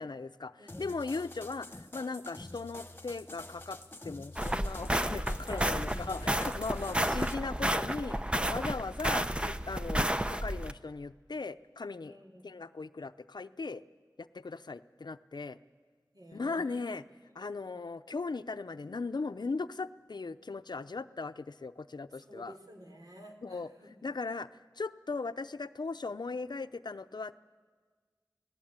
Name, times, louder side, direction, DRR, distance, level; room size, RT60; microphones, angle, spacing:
voice 1, 0.0-3.8 4.0-8.2 8.5-12.2 12.4-13.8 14.2-15.6 16.3-17.0 17.3-22.5 23.4-24.5 24.8-27.3, left 3 dB, 75° left, 12 dB, 0.7 m, -38 dB
voice 2, 0.6-0.9 5.5-6.4 6.9-7.3 8.0-8.7 12.0-12.6 16.1-16.8 17.4-17.7 22.1-23.9, right 1 dB, 60° right, 3 dB, 3.7 m, -52 dB
sound 1, 0.7-7.3, left 1 dB, 25° left, 1.4 m, -48 dB
sound 2, 4.4-10.7, right 1 dB, 15° right, 0.8 m, -31 dB
29.5 x 18.0 x 8.8 m, 1.5 s
wide cardioid pair, 50°, 8 cm